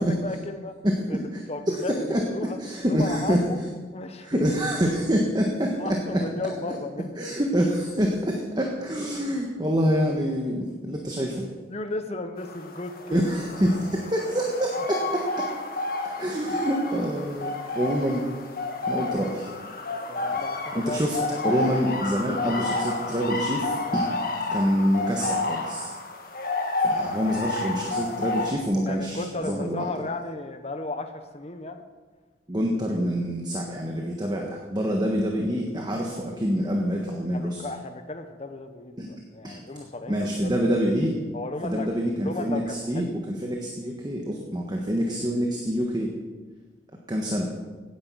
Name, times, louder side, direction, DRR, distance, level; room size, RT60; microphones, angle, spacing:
voice 1, 0.0-0.7 1.1-1.2 1.5-2.6 2.9-3.6 3.9-4.4 5.8-7.2 11.7-13.2 19.9-21.7 26.8-27.2 28.9-31.8 37.3-40.5 41.3-41.9 42.2-43.1, left 2 dB, 35° left, 7 dB, 0.9 m, -34 dB
voice 2, 0.8-1.4 1.7-3.4 4.2-6.2 7.2-11.5 13.1-15.5 16.2-18.2 18.9-19.5 20.7-21.2 21.4-24.1 24.5-25.9 26.8-29.9 32.5-37.7 39.0-39.1 39.4-39.6 40.1-41.1 41.6-46.1 47.1-47.5, equal, 25° right, 1 dB, 1.4 m, -26 dB
sound 1, 12.4-28.5, left 2 dB, 50° left, 1.7 m, -30 dB
16.5 x 10.0 x 6.3 m, 1.4 s
head